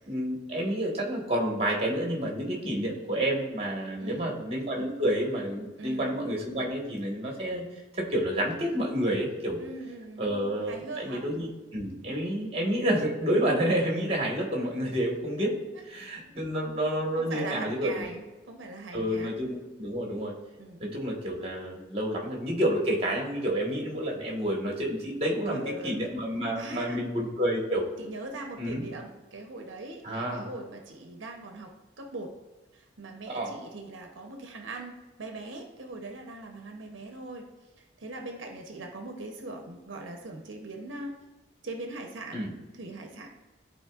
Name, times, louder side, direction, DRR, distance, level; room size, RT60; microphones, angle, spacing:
voice 1, 0.1-7.7 7.9-9.6 10.2-15.5 15.9-18.1 18.9-20.3 20.8-27.9 28.6-28.9 30.0-30.5 33.3-33.5 42.3-42.5, right 1 dB, 30° right, 0 dB, 1.4 m, -29 dB
voice 2, 4.0-4.3 5.8-6.1 9.6-10.3 10.7-11.2 17.2-19.3 20.6-20.8 25.5-26.1 26.6-27.0 28.0-32.3 32.7-34.9 35.2-37.5 38.0-41.2 41.6-42.5 42.7-43.3, right 2 dB, 80° right, 3 dB, 0.8 m, -40 dB
11.5 x 4.2 x 2.4 m, 1.2 s
head